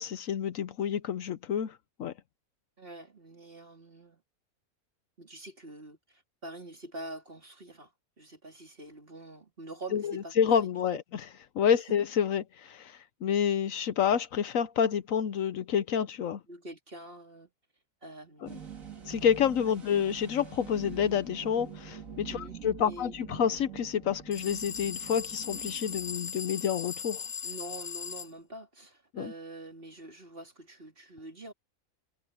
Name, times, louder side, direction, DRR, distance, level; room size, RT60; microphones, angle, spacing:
voice 1, 0.0-1.7 2.0-2.1 9.9-11.2 11.6-16.4 18.4-18.5 19.1-27.2 29.1-29.3, left 8 dB, 70° left, 1.1 m, -28 dB
voice 2, 2.8-4.2 5.2-11.0 11.7-11.8 16.5-17.5 18.0-18.6 19.7-19.8 22.3-23.2 27.4-31.5, right 2 dB, 40° right, 3.7 m, -46 dB
sound 1, 18.5-26.4, right 8 dB, 65° right, 2.7 m, -45 dB
sound 2, 24.3-28.3, left 7 dB, 45° left, 0.5 m, -38 dB
omnidirectional pair, 1.5 m